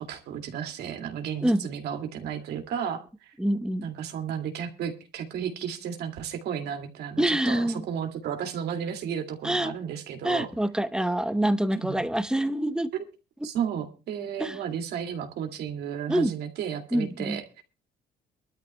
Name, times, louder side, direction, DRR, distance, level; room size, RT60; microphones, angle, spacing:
voice 1, 0.0-3.3 3.8-10.5 11.7-12.0 13.4-17.6, right 8 dB, 75° right, 2.4 m, -33 dB
voice 2, 3.4-3.9 7.2-7.8 9.4-9.7 10.2-12.9 13.4-13.5 14.4-14.6 16.1-16.3 16.9-17.4, right 1 dB, 5° right, 0.9 m, -26 dB
23.5 x 12.5 x 2.2 m
cardioid pair, 110°, 17 cm